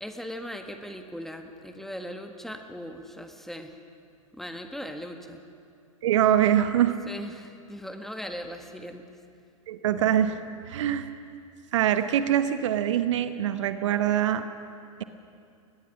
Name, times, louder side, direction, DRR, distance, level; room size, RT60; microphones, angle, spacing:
voice 1, 0.0-3.7 4.3-5.4 7.0-9.0, equal, ahead, 5 dB, 1.5 m, -39 dB
voice 2, 6.0-7.0 9.7-10.4 10.7-11.1 11.7-14.4, right 10 dB, 60° right, 11 dB, 1.0 m, -23 dB
22.0 x 19.5 x 6.2 m, 2.4 s
figure-of-eight pair, 95°, 18 cm